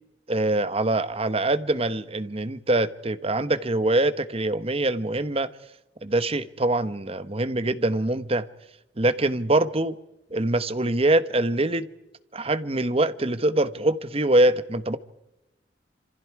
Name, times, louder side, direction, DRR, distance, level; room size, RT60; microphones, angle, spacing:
voice 1, 0.3-5.5 6.0-8.5 9.0-9.9 10.3-11.9 12.3-15.0, right 2 dB, 30° right, 13 dB, 1.1 m, -24 dB
28.0 x 27.0 x 4.8 m, 0.92 s
head